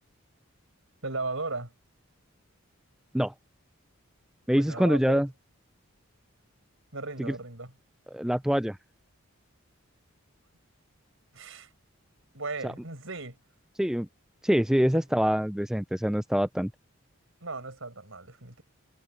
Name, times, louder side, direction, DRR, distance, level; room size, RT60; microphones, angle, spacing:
voice 1, 1.0-1.7 4.5-5.2 6.9-7.7 11.3-11.7 12.3-13.4 14.9-15.0 17.4-18.6, right 3 dB, 65° right, 5.4 m, -36 dB
voice 2, 4.5-5.3 7.2-7.3 8.1-8.8 12.6-12.7 13.8-14.1 14.4-16.7, equal, 5° right, 0.4 m, -25 dB
head